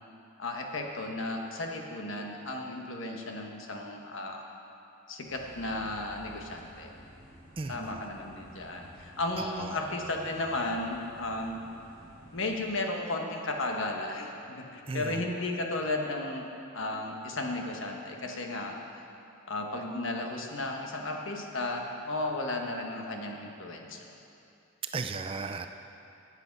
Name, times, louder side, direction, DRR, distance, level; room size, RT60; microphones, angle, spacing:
voice 1, 0.4-4.5 5.1-6.9 7.7-11.7 12.3-16.5 16.7-18.8 19.5-24.1, left 2 dB, 60° left, 2 dB, 1.3 m, -34 dB
sound 1, 5.2-12.6, equal, 10° left, 2.9 m, -53 dB
voice 2, 7.6-8.0 9.4-9.7 14.9-15.2 24.9-25.7, right 4 dB, 25° right, 8 dB, 0.3 m, -35 dB
15.5 x 8.1 x 5.3 m, 2.7 s
head